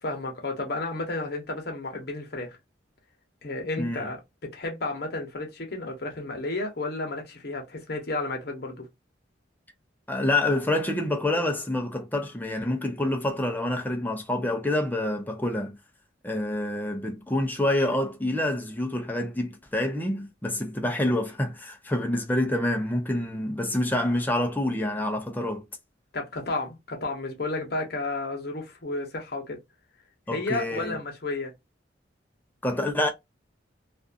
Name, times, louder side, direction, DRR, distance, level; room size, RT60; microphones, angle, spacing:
voice 1, 0.0-2.6 3.4-8.9 26.1-29.6 30.3-31.5, left 2 dB, 60° left, 0.9 m, -32 dB
voice 2, 10.1-15.8 16.2-25.6 30.3-31.0 32.6-33.1, left 1 dB, 10° left, 0.5 m, -27 dB
2.5 x 2.3 x 2.5 m
head